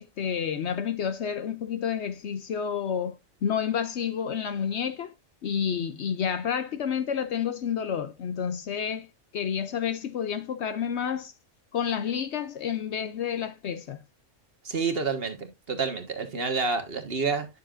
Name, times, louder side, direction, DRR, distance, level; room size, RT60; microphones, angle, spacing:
voice 1, 0.0-3.2 3.4-5.1 5.4-9.1 9.3-11.3 11.7-14.0, left 8 dB, 60° left, 0.9 m, -30 dB
voice 2, 14.6-17.5, right 4 dB, 45° right, 1.5 m, -29 dB
10.0 x 6.6 x 2.5 m
omnidirectional pair, 1.4 m